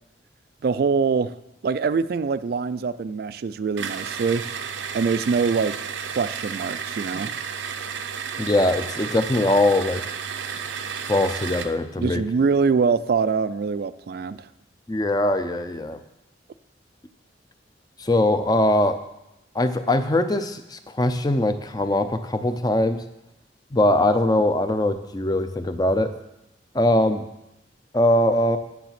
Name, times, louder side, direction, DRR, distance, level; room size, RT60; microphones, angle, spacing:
voice 1, 0.6-1.3 1.6-4.5 4.9-7.4 12.0-14.5, right 5 dB, 55° right, 14 dB, 0.3 m, -24 dB
sound 1, 3.8-11.8, right 6 dB, 85° right, 0.7 m, -32 dB
voice 2, 8.4-10.0 11.1-12.2 14.9-16.0 18.0-19.0 19.5-23.0 23.7-26.1 26.7-27.3 27.9-28.6, left 1 dB, 20° left, 9 dB, 0.5 m, -21 dB
9.5 x 7.1 x 5.9 m, 0.88 s
head